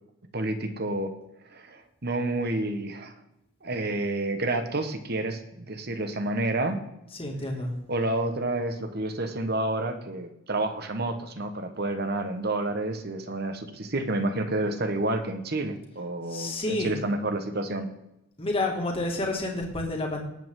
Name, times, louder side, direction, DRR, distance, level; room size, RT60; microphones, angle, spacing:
voice 1, 0.3-1.1 1.5-3.1 3.6-6.8 7.9-17.9, right 2 dB, 50° right, 8 dB, 1.4 m, -29 dB
voice 2, 7.2-7.7 16.3-17.0 18.4-20.2, left 2 dB, 25° left, 1 dB, 2.3 m, -29 dB
19.0 x 8.2 x 3.8 m, 0.85 s
head